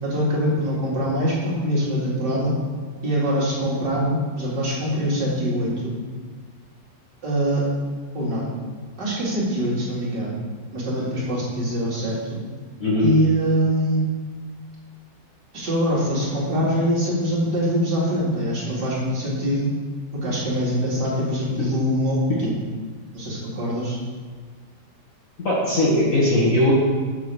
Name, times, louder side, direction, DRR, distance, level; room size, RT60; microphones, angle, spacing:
voice 1, 0.0-2.5 3.0-5.9 7.2-7.7 8.1-8.5 9.0-10.4 10.7-12.4 13.0-14.0 15.5-19.7 20.2-22.6 23.1-24.0, equal, 70° right, -7 dB, 3.1 m, -23 dB
voice 2, 25.4-26.7, left 1 dB, 45° left, -6 dB, 1.7 m, -19 dB
7.4 x 4.6 x 6.7 m, 1.5 s
omnidirectional pair, 2.0 m